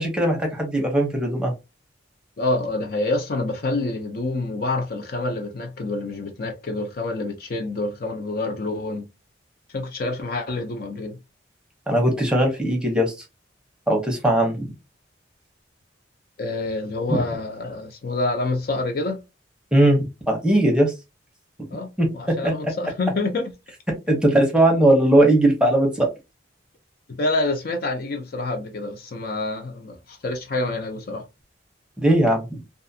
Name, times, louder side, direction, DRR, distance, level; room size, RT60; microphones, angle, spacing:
voice 1, 0.0-1.5 11.9-13.1 13.9-14.7 17.1-17.2 19.7-20.9 22.0-22.5 24.1-26.1 32.0-32.6, right 1 dB, 5° right, 0.7 m, -19 dB
voice 2, 2.4-9.1 9.7-11.2 16.4-19.2 21.7-23.5 27.1-31.2, left 2 dB, 50° left, 0.4 m, -27 dB
2.4 x 2.4 x 2.6 m
head